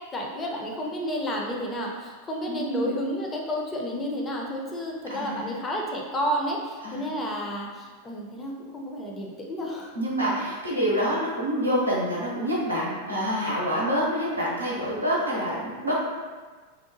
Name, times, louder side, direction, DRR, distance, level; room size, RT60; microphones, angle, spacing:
voice 1, 0.1-10.0, equal, 20° left, -1 dB, 0.4 m, -31 dB
voice 2, 2.5-3.0 5.1-5.5 6.8-7.0 9.9-16.0, equal, 85° right, -5 dB, 0.6 m, -27 dB
2.8 x 2.0 x 2.7 m, 1.4 s
figure-of-eight pair, 90°, 0 cm